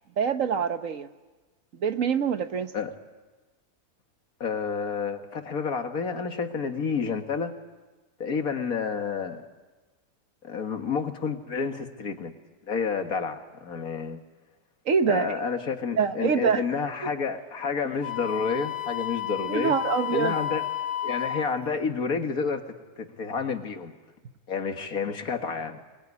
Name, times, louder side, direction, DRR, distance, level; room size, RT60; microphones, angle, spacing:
voice 1, 0.2-1.1 1.8-2.7 14.9-15.4 16.0-16.6 19.5-20.3, right 6 dB, 60° right, 9 dB, 1.4 m, -25 dB
voice 2, 4.4-7.5 8.2-9.4 10.4-12.3 12.6-14.2 15.1-19.7 20.1-20.7 21.0-22.6 23.0-23.9 24.5-25.8, left 5 dB, 70° left, 6 dB, 2.2 m, -29 dB
Wind instrument woodwind instrument, 18.0-21.6, left 11 dB, 35° left, 1.3 m, -31 dB
26.0 x 21.5 x 9.7 m, 1.2 s
omnidirectional pair, 1.6 m